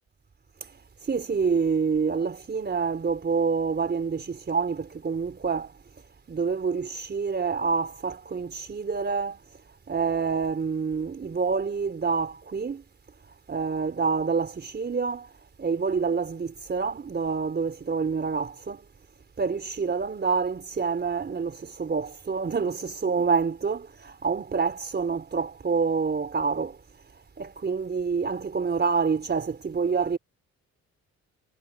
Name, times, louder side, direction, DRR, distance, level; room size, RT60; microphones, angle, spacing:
voice 1, 1.1-5.7 6.3-9.4 9.9-12.8 13.5-15.3 15.6-18.8 19.4-26.8 27.4-30.2, right 5 dB, 35° right, 4.0 m, -27 dB
cardioid pair, 90°, 30 cm